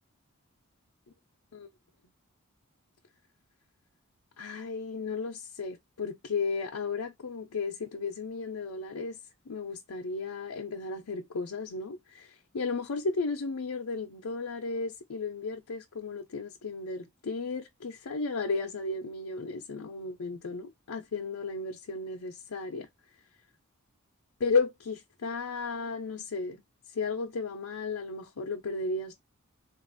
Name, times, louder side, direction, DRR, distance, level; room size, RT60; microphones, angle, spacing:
voice 1, 4.4-9.2 9.5-22.9 24.4-26.6 26.9-29.1, left 4 dB, 90° left, 0.6 m, -34 dB
3.9 x 2.5 x 2.5 m
head